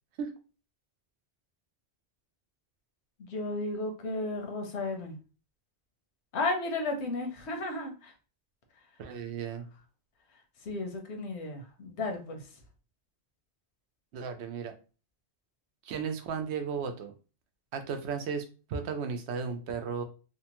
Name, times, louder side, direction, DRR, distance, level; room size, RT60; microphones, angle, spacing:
voice 1, 3.2-5.2 6.3-8.1 10.6-12.4, left 2 dB, 85° left, 4 dB, 1.0 m, -33 dB
voice 2, 9.0-9.7 14.1-14.7 15.8-17.1 17.7-20.0, right 6 dB, 80° right, 6 dB, 0.8 m, -35 dB
2.8 x 2.2 x 2.9 m, 0.34 s
omnidirectional pair, 1.1 m